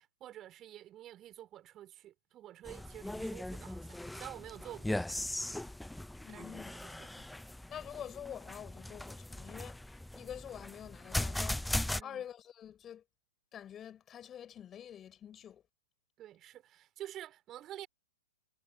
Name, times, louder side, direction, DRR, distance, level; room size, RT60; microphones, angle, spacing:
voice 1, 0.0-5.3 6.3-7.1 12.0-12.3 16.2-17.9, right 12 dB, 25° right, 3.6 m, -49 dB
sound 1, 2.7-12.0, left 1 dB, 5° left, 0.8 m, -39 dB
voice 2, 6.2-6.7 7.2-7.3 7.7-9.8 10.1-11.7 12.0-13.0 13.5-15.6, left 9 dB, 20° left, 5.6 m, -47 dB
figure-of-eight pair, 110°, 0 cm